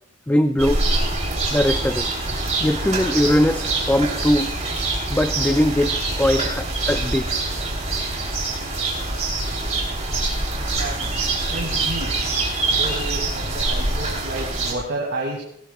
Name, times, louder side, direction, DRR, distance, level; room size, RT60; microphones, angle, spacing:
voice 1, 0.3-0.9 1.5-2.1 2.6-4.5 5.1-7.3, left 1 dB, 10° left, 9 dB, 0.3 m, -20 dB
sound 1, 0.6-14.7, right 2 dB, 35° right, 3.1 m, -24 dB
voice 2, 10.5-12.2 12.7-15.4, right 2 dB, 75° right, -1 dB, 2.1 m, -31 dB
18.0 x 16.5 x 2.3 m, 0.74 s
head